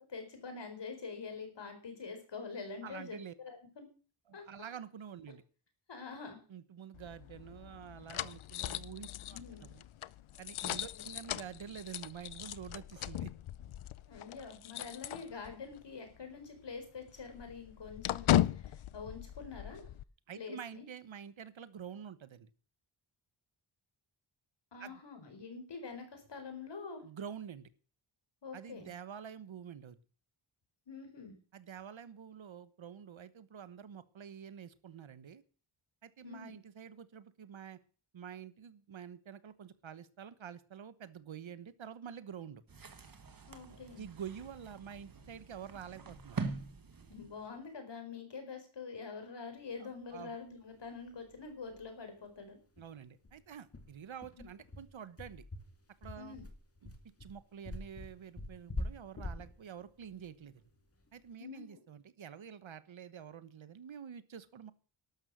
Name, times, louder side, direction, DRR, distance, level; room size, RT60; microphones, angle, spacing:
voice 1, 0.1-3.9 4.3-4.4 5.9-6.4 9.3-9.7 10.9-11.0 14.1-19.8 20.3-20.8 24.7-27.1 28.4-28.9 30.9-31.3 36.2-36.5 43.5-44.1 47.1-52.6 56.1-56.4 61.4-61.8, left 5 dB, 60° left, 6 dB, 4.7 m, -46 dB
voice 2, 2.8-3.3 4.3-5.4 6.5-9.8 10.4-13.3 20.3-22.5 24.8-25.0 27.0-27.7 28.5-30.0 31.5-35.4 36.0-37.8 38.1-42.6 44.0-46.4 50.1-50.4 52.8-55.4 56.0-56.4 56.8-56.9 57.2-60.6 61.1-64.7, right 8 dB, 70° right, 15 dB, 1.2 m, -48 dB
sound 1, 6.9-15.8 16.1-16.2 16.6-20.0, left 12 dB, 90° left, 0.6 m, -37 dB
sound 2, 42.7-47.7, right 4 dB, 45° right, 1.7 m, -44 dB
sound 3, 50.8-50.9 51.2-51.3 51.7-51.8 52.2-52.3 52.8-61.2, left 1 dB, 30° left, 2.2 m, -44 dB
12.5 x 12.0 x 6.3 m, 0.37 s
wide cardioid pair, 175°, 48 cm